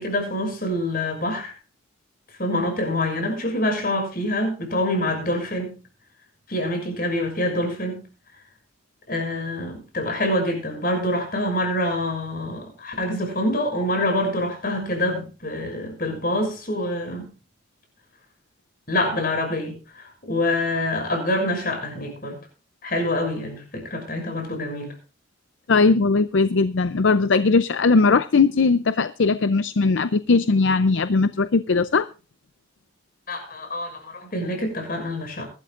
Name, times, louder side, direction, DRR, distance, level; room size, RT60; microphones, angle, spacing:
voice 1, 0.0-1.5 2.4-5.8 6.5-8.1 9.1-17.3 18.9-22.4 22.8-25.0 33.3-35.5, left 1 dB, 45° left, 6.5 m, -26 dB
voice 2, 25.7-32.1, left 4 dB, 65° left, 0.5 m, -19 dB
21.5 x 13.0 x 2.5 m
head